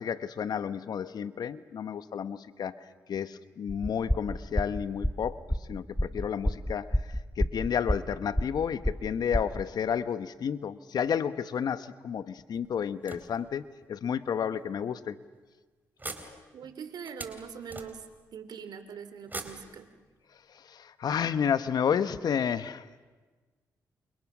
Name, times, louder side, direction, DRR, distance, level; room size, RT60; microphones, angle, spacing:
voice 1, 0.0-2.8 3.1-5.4 5.7-7.0 7.4-15.2 16.2-16.4 20.7-22.8, left 7 dB, 65° left, 13 dB, 1.1 m, -31 dB
sound 1, 3.7-9.6, equal, 5° left, 1.4 m, -30 dB
sound 2, 12.5-13.9 14.6-14.7 15.1-15.2 16.0-18.3 19.2-20.4, right 2 dB, 25° right, 3.9 m, -44 dB
voice 2, 16.5-18.0 18.3-19.9, right 6 dB, 70° right, 10 dB, 2.8 m, -42 dB
29.5 x 29.0 x 6.2 m, 1.4 s
supercardioid pair, 60°, 7 cm